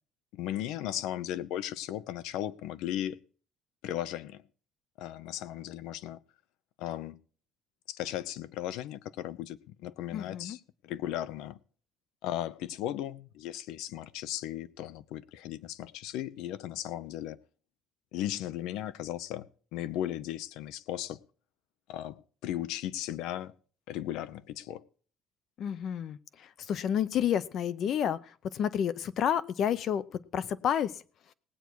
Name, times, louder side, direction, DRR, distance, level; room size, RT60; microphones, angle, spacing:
voice 1, 0.3-3.2 3.8-4.4 5.0-6.2 6.8-7.2 7.9-11.6 12.2-17.4 18.1-21.2 21.9-23.5 23.9-24.8, left 12 dB, 80° left, 0.7 m, -36 dB
voice 2, 10.1-10.6 25.6-26.2 26.7-28.2 28.5-30.0 30.3-30.9, left 9 dB, 45° left, 0.6 m, -29 dB
18.5 x 8.3 x 4.6 m
cardioid pair, 160°, 0 cm